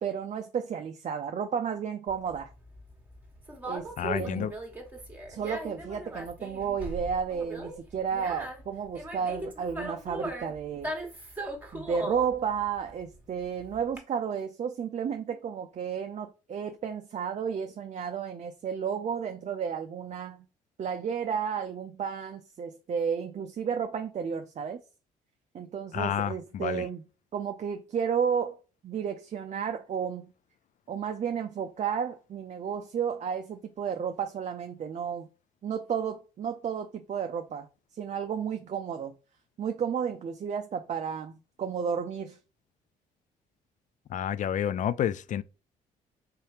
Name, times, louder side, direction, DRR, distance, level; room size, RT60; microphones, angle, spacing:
voice 1, 0.0-2.5 3.6-4.5 5.3-10.9 11.7-20.5 20.8-24.8 25.5-27.0 27.3-28.6 28.8-30.3 30.9-35.3 35.6-37.7 38.0-39.1 39.6-42.4, right 7 dB, 40° right, 0.5 m, -32 dB
Conversation, 2.1-14.0, right 1 dB, 10° right, 1.3 m, -39 dB
voice 2, 4.0-4.5 25.9-26.9 44.1-45.4, left 9 dB, 45° left, 0.4 m, -30 dB
3.7 x 2.7 x 3.2 m
hypercardioid pair, 55°, 18 cm